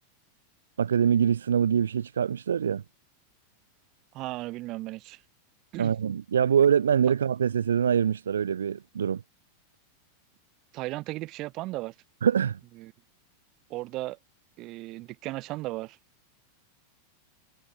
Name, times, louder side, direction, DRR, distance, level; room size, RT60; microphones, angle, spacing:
voice 1, 0.8-2.8 5.8-9.2 12.2-12.6, right 8 dB, 65° right, 0.5 m, -24 dB
voice 2, 4.1-5.2 5.7-6.0 10.7-11.9 12.8-12.9 13.7-14.2 14.6-16.0, right 19 dB, 40° right, 1.8 m, -35 dB
figure-of-eight pair, 90°, 0 cm